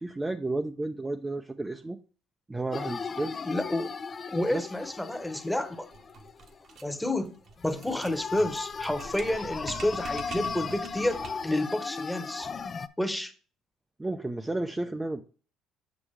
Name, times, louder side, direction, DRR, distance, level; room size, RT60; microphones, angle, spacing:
voice 1, 0.0-2.0 2.5-3.4 4.5-4.7 14.0-15.2, right 2 dB, 15° right, 0.6 m, -32 dB
sound 1, 2.7-6.8 7.1-7.2 7.6-12.9, left 5 dB, 35° left, 0.5 m, -37 dB
voice 2, 3.4-3.9 4.3-5.9 6.8-7.3 7.6-12.5 13.0-13.3, left 1 dB, 5° left, 1.1 m, -30 dB
sound 2, 5.9-11.6, right 5 dB, 55° right, 1.1 m, -45 dB
7.2 x 6.0 x 3.3 m
supercardioid pair, 90°, 0 cm